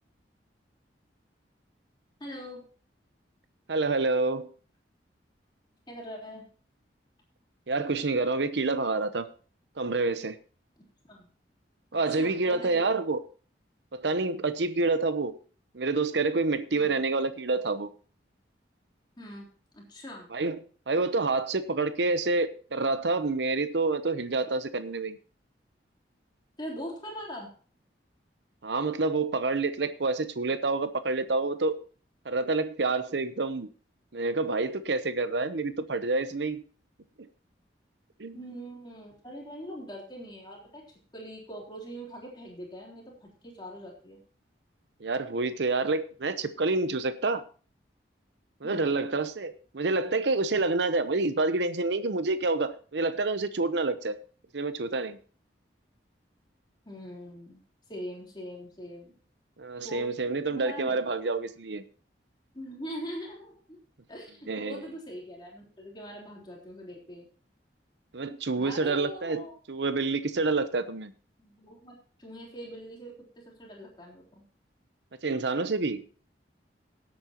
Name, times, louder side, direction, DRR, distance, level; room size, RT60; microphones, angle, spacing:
voice 1, 2.2-2.6 5.9-6.5 11.1-11.3 12.1-12.9 16.7-17.0 19.2-19.5 19.7-20.3 26.6-27.5 38.3-40.8 41.1-44.2 48.6-48.9 56.9-57.6 57.9-59.2 59.8-60.1 60.5-61.1 62.5-63.8 64.1-67.3 68.6-69.6 71.4-74.4, equal, 25° left, -2 dB, 3.6 m, -42 dB
voice 2, 3.7-4.5 7.7-9.3 9.8-10.4 11.9-13.2 13.9-15.4 15.7-17.9 20.3-20.6 20.9-25.2 28.6-31.8 32.2-33.7 34.1-36.6 37.2-37.3 38.2-38.4 45.0-47.4 48.6-54.2 54.5-55.2 59.6-61.8 64.5-64.9 68.1-69.4 69.7-71.1 75.2-76.1, right 3 dB, 75° right, 12 dB, 0.8 m, -28 dB
17.0 x 8.7 x 3.0 m, 0.40 s
head